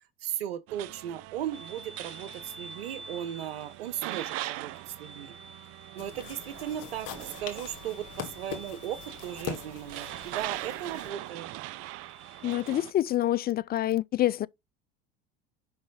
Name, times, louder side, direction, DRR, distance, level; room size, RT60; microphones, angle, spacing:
voice 1, 0.2-5.3 5.9-11.5, right 11 dB, 90° right, 1.1 m, -37 dB
sound 1, 0.7-12.9, right 18 dB, 55° right, 0.5 m, -42 dB
sound 2, 1.5-12.7, right 1 dB, ahead, 1.2 m, -50 dB
sound 3, 6.0-11.1, left 9 dB, 55° left, 1.9 m, -42 dB
voice 2, 12.4-14.5, left 13 dB, 35° left, 0.4 m, -27 dB
6.0 x 5.6 x 5.4 m
hypercardioid pair, 85°, 30 cm